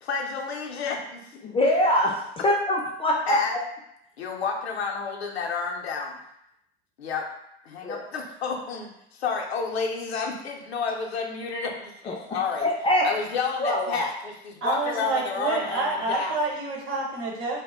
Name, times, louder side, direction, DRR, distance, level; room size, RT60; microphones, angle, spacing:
voice 1, 0.0-1.3 3.3-3.5 4.2-6.2 7.0-7.3 7.6-12.6 13.0-16.4, left 5 dB, 85° left, 1 dB, 0.5 m, -30 dB
voice 2, 1.4-3.4 7.8-8.0 12.1-12.2 12.6-13.1 13.6-14.1, left 1 dB, 20° left, -1 dB, 0.3 m, -23 dB
voice 3, 14.6-17.6, right 3 dB, 45° right, -2 dB, 0.9 m, -28 dB
2.1 x 2.0 x 3.4 m, 0.79 s
hypercardioid pair, 75°, 31 cm